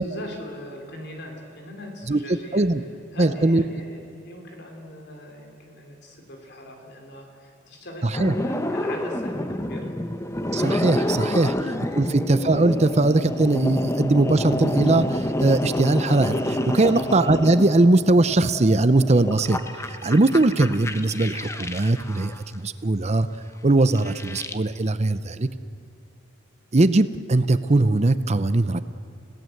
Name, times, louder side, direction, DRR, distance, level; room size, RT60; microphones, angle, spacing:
voice 1, 0.0-2.7 3.1-10.0 11.9-12.1 16.8-17.1 19.1-19.3, left 1 dB, 55° left, 2 dB, 3.5 m, -40 dB
voice 2, 2.1-2.8 3.2-3.6 8.0-8.3 10.5-11.5 11.9-19.6 20.0-23.3 23.6-25.5 26.7-28.8, right 2 dB, 35° right, 12 dB, 0.7 m, -20 dB
sound 1, 8.1-22.4 23.9-24.6, left 1 dB, 15° left, 0.9 m, -28 dB
30.0 x 17.5 x 7.9 m, 2.6 s
head